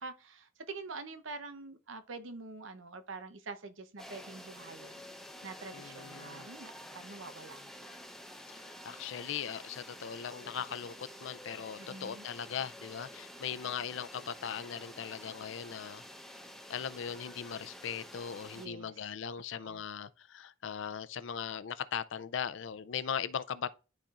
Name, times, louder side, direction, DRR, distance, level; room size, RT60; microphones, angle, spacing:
voice 1, 0.0-5.0 5.4-7.8 11.8-12.3 18.5-19.1 19.6-19.8, right 3 dB, 80° right, 0.8 m, -46 dB
sound 1, 4.0-18.7, left 1 dB, ahead, 0.8 m, -49 dB
voice 2, 5.7-6.5 8.5-16.0 16.7-23.7, left 8 dB, 70° left, 0.4 m, -39 dB
11.5 x 4.2 x 2.5 m
head